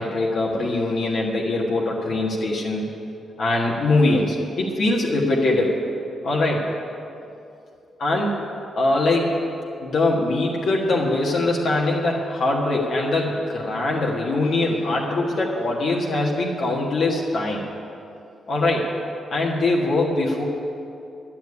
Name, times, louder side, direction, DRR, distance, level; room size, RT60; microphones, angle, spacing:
voice 1, 0.0-2.8 3.4-5.8 6.2-6.6 8.0-8.5 8.8-9.4 9.8-17.6 18.5-18.9 19.3-20.4, left 2 dB, 60° left, -2 dB, 1.5 m, -22 dB
10.5 x 7.4 x 9.6 m, 2.7 s
cardioid pair, 110°, 0 cm